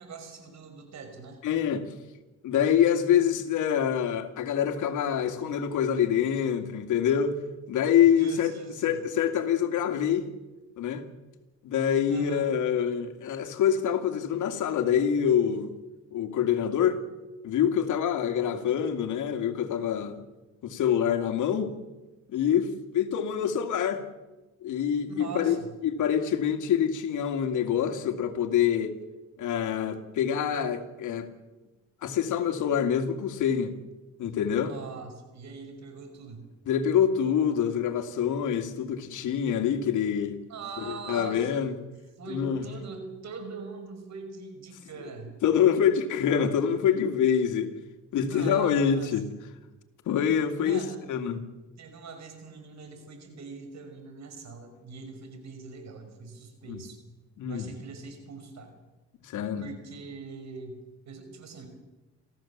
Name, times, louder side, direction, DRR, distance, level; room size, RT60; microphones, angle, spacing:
voice 1, 0.0-1.4 8.2-9.0 12.1-12.5 25.1-25.7 34.6-36.5 40.5-41.6 42.2-45.3 48.1-49.2 50.6-51.0 51.8-57.0 57.5-58.8 59.6-61.7, right 4 dB, 65° right, 6.0 m, -42 dB
voice 2, 1.4-1.8 2.4-7.4 7.7-8.5 8.8-10.3 10.8-11.0 11.6-15.7 16.1-17.0 17.4-20.2 20.6-21.7 22.3-24.0 24.6-25.6 25.8-29.0 29.4-31.3 32.0-33.7 34.2-34.7 36.7-40.4 40.9-41.7 42.3-42.6 45.4-47.7 48.1-49.3 50.1-50.8 51.1-51.4 56.7-56.8 57.4-57.7 59.2-59.6, left 8 dB, 80° left, 2.4 m, -26 dB
27.5 x 15.5 x 7.4 m
cardioid pair, 90°, 30 cm